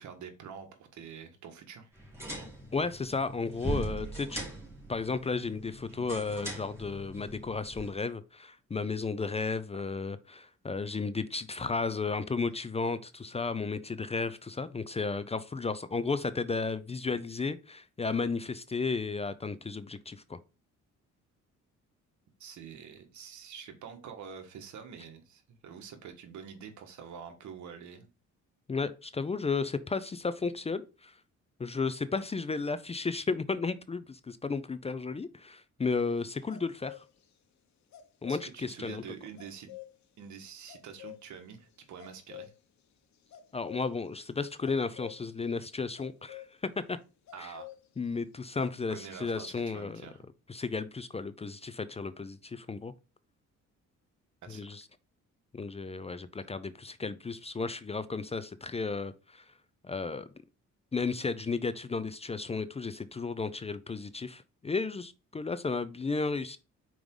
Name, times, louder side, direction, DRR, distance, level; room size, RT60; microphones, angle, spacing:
voice 1, 0.0-1.9 22.4-28.1 38.3-39.7 40.2-42.5 47.3-47.7 48.9-50.2 54.4-54.6, right 7 dB, 70° right, 1.5 m, -46 dB
sound 1, 1.9-7.9, right 2 dB, 10° right, 3.3 m, -41 dB
voice 2, 2.7-4.5 4.9-20.4 28.7-31.1 31.6-37.0 38.2-39.0 43.5-46.4 46.9-47.0 47.4-47.5 48.0-50.0 50.5-52.9 54.5-54.8 55.5-59.4 59.8-60.3 60.9-66.6, left 4 dB, 20° left, 0.5 m, -33 dB
sound 2, 35.9-37.3 37.9-38.5 39.4-40.0 40.7-41.5 41.8-42.6 43.1-43.9 44.6-45.2 46.0-46.5 47.3-48.1 48.4-48.7, left 14 dB, 65° left, 1.2 m, -47 dB
5.3 x 4.7 x 3.8 m
cardioid pair, 90°, 30 cm